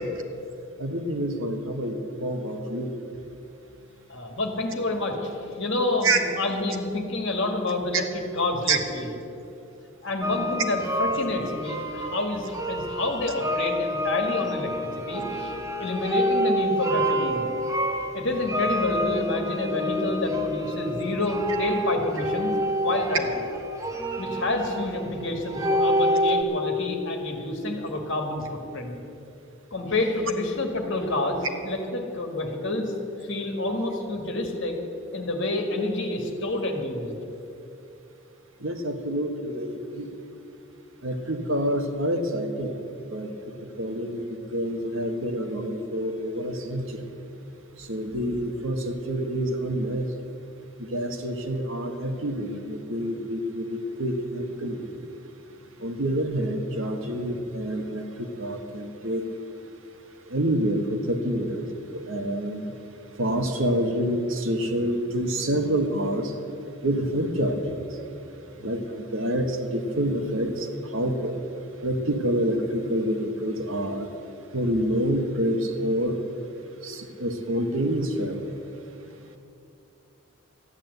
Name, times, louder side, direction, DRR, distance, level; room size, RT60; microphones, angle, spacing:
voice 1, 0.8-2.9 6.0-6.2 7.9-8.0 8.7-8.8 38.6-40.1 41.0-42.8 43.1-43.3 43.8-44.2 44.5-47.0 47.8-50.1 50.8-54.8 55.8-59.2 60.3-61.6 61.9-62.6 63.2-66.3 66.8-67.8 68.6-70.7 70.9-71.4 71.8-74.1 74.5-76.2 76.8-78.5, right 1 dB, 65° right, 5 dB, 1.4 m, -27 dB
voice 2, 4.1-9.1 10.0-14.7 15.1-15.5 15.8-17.5 18.1-22.5 22.8-23.3 24.2-28.4 28.7-29.0 29.7-32.9 33.2-34.8 35.1-37.1, left 2 dB, 60° left, 3 dB, 1.9 m, -28 dB
sound 1, 10.2-26.4, equal, 15° right, 0.9 m, -28 dB
13.5 x 10.5 x 8.1 m, 2.8 s
head